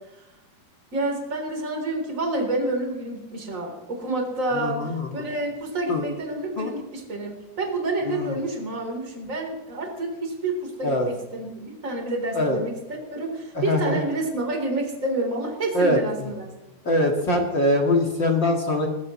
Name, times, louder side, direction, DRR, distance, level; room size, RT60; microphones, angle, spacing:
voice 1, 0.9-12.7 13.0-16.4, right 2 dB, 20° right, 1 dB, 3.9 m, -28 dB
voice 2, 4.5-5.3 5.9-6.1 6.6-6.7 8.1-8.4 10.8-11.1 12.3-12.6 13.5-14.0 15.7-16.3 16.8-18.9, left 1 dB, 40° left, 0 dB, 1.9 m, -23 dB
21.5 x 20.5 x 3.2 m, 1.0 s
omnidirectional pair, 4.5 m